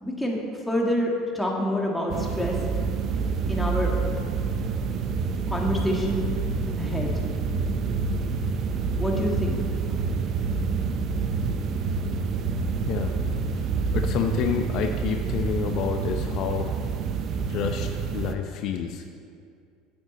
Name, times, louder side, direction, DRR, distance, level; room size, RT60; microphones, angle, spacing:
voice 1, 0.0-2.6 3.5-4.0 5.5-6.3 6.8-7.2 9.0-9.6 9.9-10.0, left 1 dB, 5° left, -2 dB, 1.8 m, -27 dB
sound 1, 2.1-18.3, right 5 dB, 50° right, 0.6 m, -27 dB
voice 2, 13.5-16.7 17.4-19.1, left 8 dB, 55° left, 5 dB, 0.7 m, -29 dB
9.0 x 7.9 x 4.1 m, 2.3 s
hypercardioid pair, 90°, 0 cm